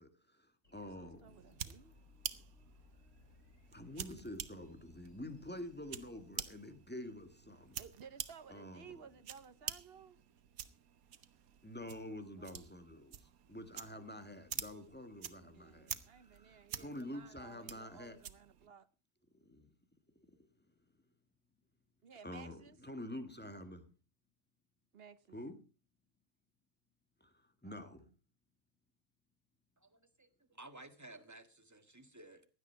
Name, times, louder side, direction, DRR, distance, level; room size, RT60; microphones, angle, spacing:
voice 1, 0.0-1.4 3.7-7.8 8.5-9.0 11.6-18.2 19.3-19.7 20.1-20.5 22.2-23.9 25.3-25.5 27.2-28.0, left 1 dB, 5° left, 1.7 m, -48 dB
sound 1, 0.6-7.1, left 4 dB, 50° left, 5.9 m, -65 dB
voice 2, 0.8-1.9 7.8-10.2 12.4-12.7 15.4-18.9 22.0-22.8 24.9-25.4 27.6-27.9, right 7 dB, 50° right, 0.9 m, -57 dB
sound 2, 1.3-18.7, right 9 dB, 85° right, 1.4 m, -49 dB
voice 3, 29.8-32.5, right 2 dB, 15° right, 1.4 m, -55 dB
16.0 x 11.5 x 4.6 m
omnidirectional pair, 1.4 m